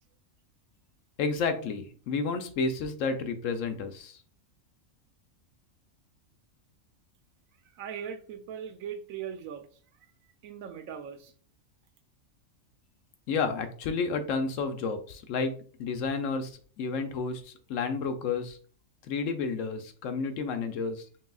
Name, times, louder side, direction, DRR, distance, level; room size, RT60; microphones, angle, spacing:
voice 1, 1.2-4.2 13.3-15.5 15.8-18.6 19.1-21.1, left 4 dB, 80° left, 1.0 m, -31 dB
voice 2, 7.8-9.7 10.4-11.3, right 8 dB, 90° right, 1.0 m, -39 dB
5.5 x 2.7 x 2.3 m
omnidirectional pair, 1.4 m